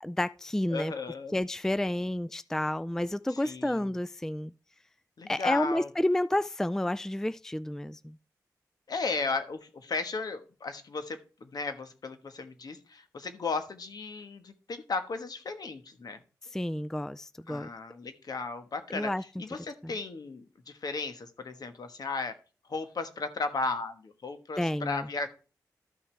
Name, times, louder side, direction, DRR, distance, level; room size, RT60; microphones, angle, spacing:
voice 1, 0.0-0.9 1.3-4.5 5.3-8.2 16.5-17.7 18.9-19.2 19.8-19.9 24.6-25.1, left 1 dB, 5° left, 0.3 m, -30 dB
voice 2, 0.7-1.4 3.3-3.9 5.2-5.9 8.9-16.2 17.5-19.1 19.4-22.4 22.7-25.3, left 3 dB, 65° left, 1.3 m, -35 dB
13.0 x 5.8 x 3.3 m
cardioid pair, 45°, 7 cm